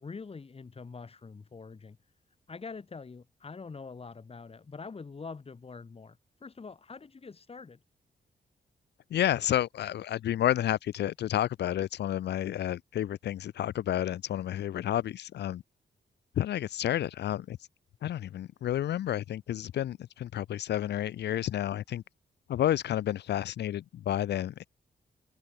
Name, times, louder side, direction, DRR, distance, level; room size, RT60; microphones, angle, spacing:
voice 1, 0.0-2.0 2.5-7.8, left 4 dB, 35° left, 1.5 m, -44 dB
voice 2, 9.1-15.6 16.4-17.6 18.0-22.0 22.5-24.7, left 11 dB, 85° left, 0.7 m, -30 dB
cardioid pair, 80°, 17 cm